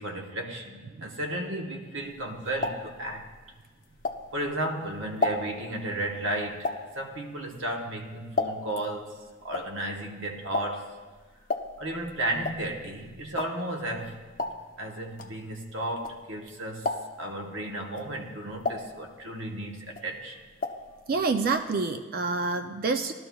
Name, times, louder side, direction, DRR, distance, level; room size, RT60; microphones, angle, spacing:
voice 1, 0.0-3.3 4.3-11.0 11.8-14.2 14.8-20.4, right 1 dB, 60° right, 1.1 m, -34 dB
sound 1, 2.1-4.6 5.0-8.9 9.2-16.5 16.8-17.3 17.8-19.5 19.8-20.9 21.2-21.3 21.5-21.6, left 3 dB, 40° left, 0.7 m, -34 dB
voice 2, 21.1-23.1, right 4 dB, 45° right, 0.4 m, -27 dB
18.5 x 12.5 x 2.3 m
head